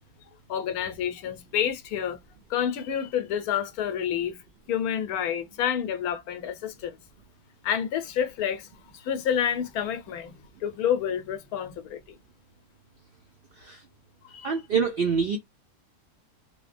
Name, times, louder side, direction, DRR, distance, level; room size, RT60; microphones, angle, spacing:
voice 1, 0.5-2.2 2.5-4.4 4.7-7.0 7.6-8.7 8.9-12.0 14.2-14.6, left 9 dB, 75° left, 1.1 m, -29 dB
voice 2, 14.4-15.4, right 6 dB, 75° right, 0.5 m, -26 dB
3.1 x 2.1 x 2.4 m
omnidirectional pair, 1.6 m